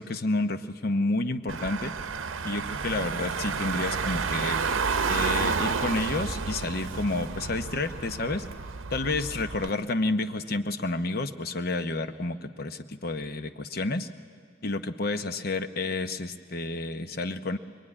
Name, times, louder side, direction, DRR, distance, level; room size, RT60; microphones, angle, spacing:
voice 1, 0.0-1.9 2.4-4.6 5.1-8.5 8.9-14.1 14.6-17.6, left 2 dB, 50° left, 10 dB, 0.9 m, -30 dB
Car / Engine, 1.5-9.7, right 5 dB, 85° right, 0.8 m, -30 dB
24.0 x 23.0 x 9.8 m, 2.1 s
head